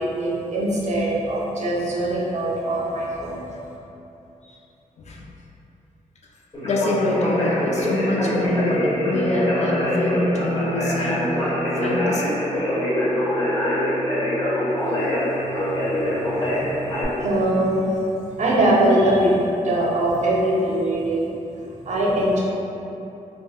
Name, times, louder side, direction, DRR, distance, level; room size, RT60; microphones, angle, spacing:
voice 1, 0.0-3.4 16.0-16.2 16.5-16.8 17.2-17.9 18.4-19.4 19.6-21.3 21.9-22.4, right 1 dB, 60° right, -5 dB, 0.5 m, -22 dB
Conversation, 6.5-17.0, equal, 35° left, 1.0 m, -24 dB
voice 2, 6.6-12.4, left 1 dB, 55° left, -2 dB, 0.4 m, -25 dB
3.4 x 2.1 x 2.4 m, 2.9 s
wide cardioid pair, 135°, 14 cm